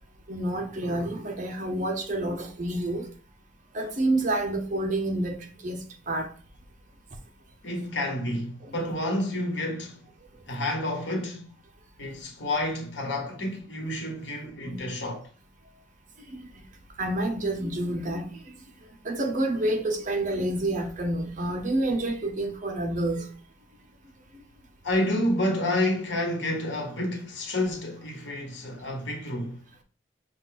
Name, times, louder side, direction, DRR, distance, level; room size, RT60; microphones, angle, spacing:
voice 1, 0.3-3.1 3.7-6.3 14.6-14.9 16.3-16.5 17.0-18.3 19.0-23.3, right 1 dB, 45° right, 0.7 m, -28 dB
voice 2, 7.6-10.0 10.5-11.5 12.0-15.2 24.8-29.6, left 1 dB, 85° left, 1.3 m, -29 dB
5.5 x 2.4 x 3.8 m
head